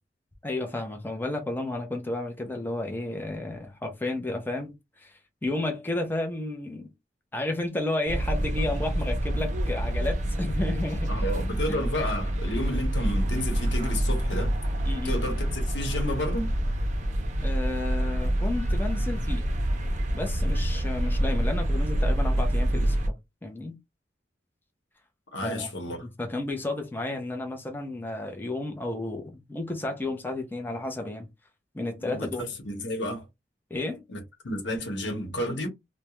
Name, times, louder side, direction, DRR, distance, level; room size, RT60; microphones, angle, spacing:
voice 1, 0.4-4.7 5.0-5.1 5.4-6.9 7.3-11.1 11.7-11.8 14.8-15.2 17.4-19.5 20.1-23.2 23.4-23.8 25.4-25.7 26.0-31.3 31.7-32.5 33.7-34.0, left 2 dB, 10° left, 0.5 m, -32 dB
sound 1, 8.1-23.1, right 1 dB, 45° right, 0.5 m, -27 dB
voice 2, 11.1-14.5 15.0-16.5 25.3-26.1 32.0-33.3 34.1-35.7, left 1 dB, 90° left, 0.9 m, -31 dB
2.3 x 2.1 x 2.9 m
head